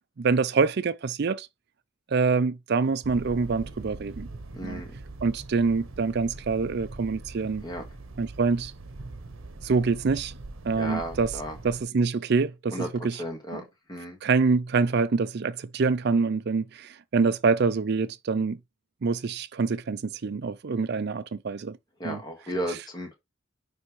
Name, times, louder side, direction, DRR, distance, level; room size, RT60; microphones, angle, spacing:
voice 1, 0.2-1.5 2.1-4.3 4.6-4.8 5.2-7.6 8.2-8.7 9.6-10.4 10.6-11.3 11.6-13.2 13.5-13.6 14.2-18.6 19.0-21.8 22.0-22.2, right 4 dB, 50° right, 0.4 m, -25 dB
sound 1, 3.0-11.8, right 2 dB, 70° right, 0.9 m, -42 dB
voice 2, 4.5-4.9 7.6-7.8 10.8-11.6 12.7-12.9 13.2-13.6 13.9-14.2 22.0-23.1, equal, 20° left, 1.6 m, -34 dB
9.9 x 3.5 x 3.1 m
head